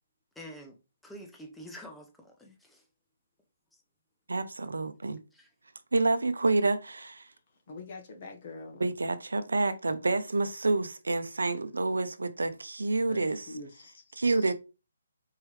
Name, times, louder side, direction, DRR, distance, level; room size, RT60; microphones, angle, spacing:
voice 1, 0.4-2.8 3.7-3.8 5.3-5.5, equal, 5° left, 0.8 m, -47 dB
voice 2, 4.3-5.2 5.9-7.3 8.8-13.5 14.2-14.5, right 3 dB, 80° right, 0.6 m, -28 dB
voice 3, 7.3-8.8 12.9-14.5, left 2 dB, 45° left, 1.4 m, -46 dB
4.6 x 3.1 x 3.2 m
figure-of-eight pair, 140°, 0 cm